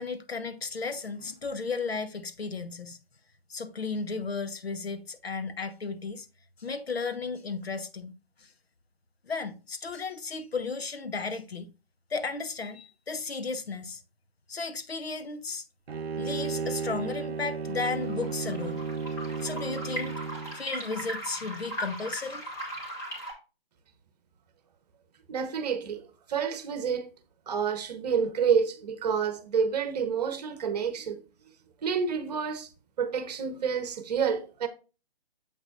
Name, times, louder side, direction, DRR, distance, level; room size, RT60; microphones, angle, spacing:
voice 1, 0.0-3.0 3.5-6.3 6.6-8.1 8.4-8.5 9.2-11.7 12.1-14.0 14.5-15.6 16.2-18.8 19.4-20.2 20.5-22.5, left 4 dB, 75° left, 1.1 m, -34 dB
Bowed string instrument, 15.9-20.6, right 5 dB, 75° right, 0.7 m, -34 dB
sound 1, 17.7-23.3, equal, 10° left, 2.2 m, -38 dB
voice 2, 25.3-27.1 27.5-31.2 31.8-32.7 33.0-34.7, right 6 dB, 40° right, 1.2 m, -29 dB
7.4 x 6.0 x 2.5 m
figure-of-eight pair, 140°, 31 cm